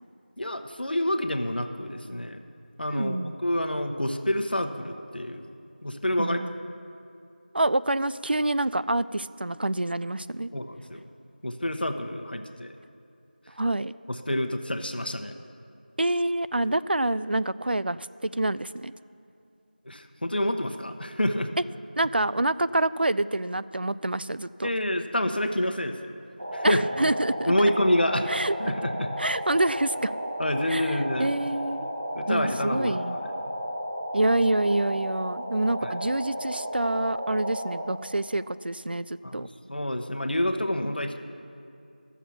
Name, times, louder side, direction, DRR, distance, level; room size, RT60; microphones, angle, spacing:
voice 1, 0.4-2.4 2.8-5.5 5.8-6.4 10.5-11.1 11.4-12.7 14.1-15.3 19.9-21.5 24.6-26.1 26.5-26.8 27.5-28.3 28.6-29.1 30.4-31.3 32.1-33.0 35.8-35.9 39.2-41.2, left 1 dB, 70° left, 5 dB, 1.0 m, -28 dB
voice 2, 2.9-3.3 6.2-6.5 7.5-10.5 13.6-13.9 16.0-18.9 22.0-24.7 26.6-27.5 28.3-28.5 29.2-30.1 30.7-31.9 32.3-33.2 34.1-39.5, right 1 dB, 80° right, 16 dB, 0.4 m, -27 dB
sound 1, 26.4-37.9, equal, 50° right, 1.5 m, -33 dB
12.5 x 7.2 x 7.1 m, 2.5 s
figure-of-eight pair, 180°, 5 cm